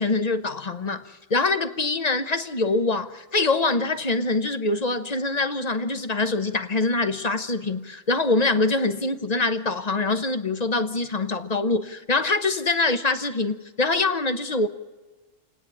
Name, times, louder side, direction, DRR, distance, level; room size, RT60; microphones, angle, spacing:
voice 1, 0.0-14.7, left 3 dB, 35° left, 9 dB, 1.0 m, -24 dB
28.0 x 9.9 x 9.7 m, 1.2 s
omnidirectional pair, 1.3 m